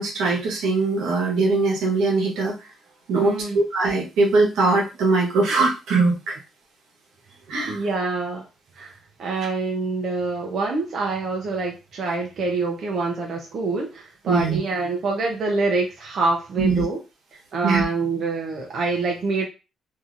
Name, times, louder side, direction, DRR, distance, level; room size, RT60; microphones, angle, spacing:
voice 1, 0.0-2.6 3.1-6.4 7.5-7.8 14.3-14.6 16.6-16.9 17.6-17.8, right 3 dB, 85° right, -1 dB, 1.0 m, -21 dB
voice 2, 3.1-3.6 7.7-8.5 8.7-17.0 17.3-19.5, right 3 dB, 60° right, 0 dB, 0.6 m, -26 dB
2.9 x 2.6 x 2.5 m, 0.30 s
cardioid pair, 90°, 0 cm